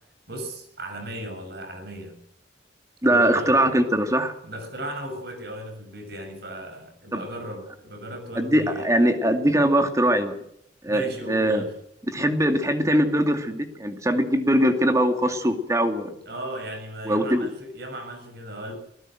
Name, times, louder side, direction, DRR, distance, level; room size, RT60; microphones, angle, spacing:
voice 1, 0.3-2.1 3.0-3.6 4.4-9.0 10.9-11.7 16.2-18.7, right 1 dB, 60° right, 6 dB, 6.7 m, -36 dB
voice 2, 3.0-4.3 7.1-7.2 8.4-10.4 10.8-11.6 12.1-16.1 17.1-17.5, right 1 dB, 20° right, 7 dB, 2.3 m, -21 dB
23.5 x 17.5 x 7.8 m, 0.72 s
head